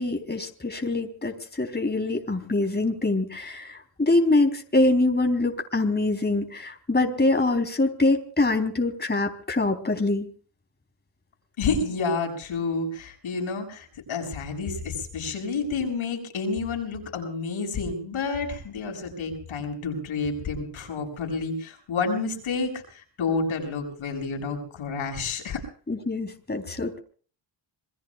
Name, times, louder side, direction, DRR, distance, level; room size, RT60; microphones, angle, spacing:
voice 1, 0.0-10.3 25.9-27.0, left 2 dB, 20° left, 4 dB, 3.7 m, -24 dB
voice 2, 11.6-25.6, left 4 dB, 80° left, 3 dB, 7.0 m, -29 dB
27.5 x 21.0 x 2.4 m, 0.42 s
cardioid pair, 65°, 48 cm